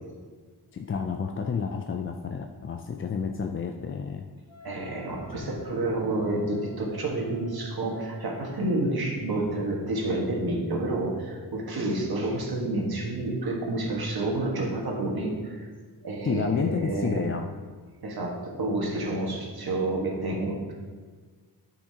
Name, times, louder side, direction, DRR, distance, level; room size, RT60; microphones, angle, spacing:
voice 1, 0.7-4.3 5.4-5.6 16.2-17.5, left 6 dB, 35° left, 4 dB, 0.4 m, -30 dB
Wind instrument woodwind instrument, 4.5-9.2, left 4 dB, 15° right, 1.7 m, -51 dB
voice 2, 4.6-15.6 16.0-17.2 18.0-20.7, right 2 dB, 60° right, -1 dB, 1.6 m, -29 dB
12.0 x 5.7 x 2.9 m, 1.5 s
wide cardioid pair, 110°, 41 cm